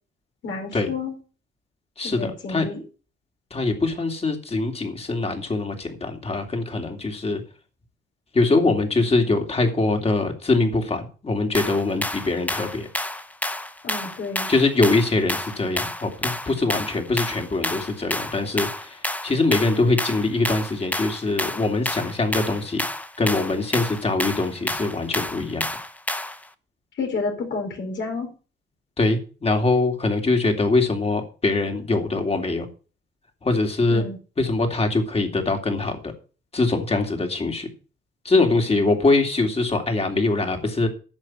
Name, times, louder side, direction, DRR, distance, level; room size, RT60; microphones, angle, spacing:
voice 1, 0.4-1.1 2.0-2.8 13.8-14.5 27.0-28.3 33.9-34.2, left 4 dB, 65° left, 2 dB, 4.6 m, -30 dB
voice 2, 2.0-2.7 3.5-7.4 8.3-12.9 14.5-22.8 23.2-25.6 29.0-32.7 33.4-34.0 34.4-36.1 36.5-37.7 38.2-40.9, left 3 dB, 30° left, 4 dB, 3.1 m, -23 dB
sound 1, 11.5-26.5, left 1 dB, 5° left, 0.9 m, -30 dB
10.5 x 6.9 x 7.5 m, 0.37 s
cardioid pair, 90°, 20 cm